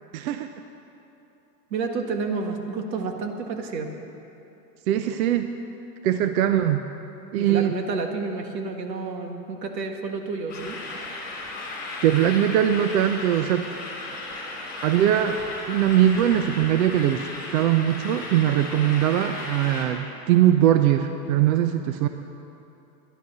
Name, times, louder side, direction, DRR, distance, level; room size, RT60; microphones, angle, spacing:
voice 1, 0.1-0.5 4.9-5.5 6.0-6.8 7.3-7.8 12.0-13.7 14.1-14.2 14.8-15.4 15.7-22.1, right 11 dB, 60° right, 8 dB, 0.7 m, -21 dB
voice 2, 1.7-3.9 7.4-10.8, right 4 dB, 85° right, 4 dB, 1.7 m, -30 dB
sound 1, 10.5-19.9, left 2 dB, 20° left, 3.3 m, -35 dB
12.5 x 11.0 x 6.6 m, 2.9 s
supercardioid pair, 145°, 49 cm